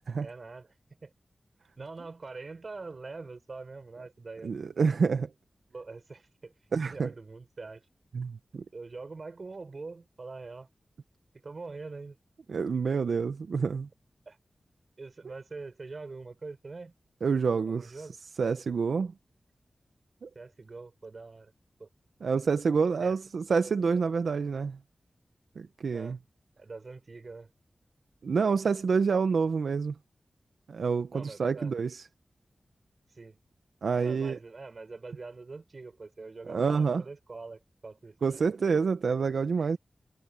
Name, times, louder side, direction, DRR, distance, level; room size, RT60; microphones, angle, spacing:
voice 1, 0.2-0.7 1.0-1.1 1.8-4.9 5.7-6.5 6.8-7.8 8.7-10.7 11.4-12.2 14.3-14.4 15.0-16.9 17.7-18.2 20.4-21.5 21.8-21.9 23.0-23.2 25.9-26.2 26.6-27.5 31.1-31.7 33.1-33.4 34.0-38.4 39.6-39.8, right 3 dB, 55° right, 5.3 m, -44 dB
voice 2, 4.4-5.3 6.7-7.1 8.1-8.6 12.5-13.9 17.2-17.9 18.4-19.1 20.2-20.3 22.2-24.8 25.6-26.2 28.2-29.9 30.7-32.1 33.8-34.4 36.5-37.0 38.2-39.8, right 5 dB, 90° right, 0.7 m, -27 dB
cardioid pair, 60°, 0 cm